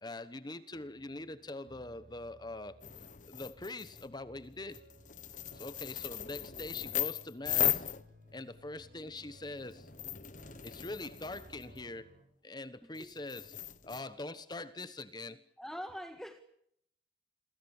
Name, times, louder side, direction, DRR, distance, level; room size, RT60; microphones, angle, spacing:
voice 1, 0.0-2.8 3.3-4.8 5.5-7.9 8.3-9.9 10.6-12.1 12.4-13.5 13.8-15.4, left 2 dB, 25° left, 14 dB, 1.1 m, -43 dB
sound 1, 0.7-12.2, equal, 50° right, 6.9 m, -60 dB
sound 2, 2.8-4.1 4.7-8.6 9.2-11.8 12.9-14.0, left 12 dB, 45° left, 1.3 m, -37 dB
voice 2, 12.8-13.2 15.6-16.4, equal, ahead, 7 dB, 1.7 m, -44 dB
28.5 x 22.0 x 7.2 m, 0.72 s
head